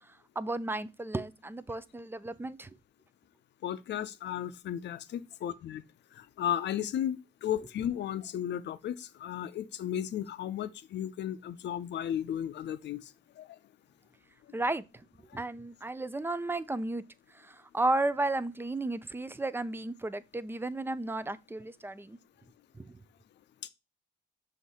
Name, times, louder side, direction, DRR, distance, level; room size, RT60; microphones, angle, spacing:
voice 1, 0.0-2.8 14.5-14.9 15.3-17.0 17.3-22.2 22.8-23.0, right 2 dB, 10° right, 0.4 m, -33 dB
voice 2, 3.6-5.8 6.2-13.0 13.4-13.6, left 10 dB, 60° left, 0.6 m, -34 dB
6.3 x 2.8 x 5.5 m
cardioid pair, 90°, 20 cm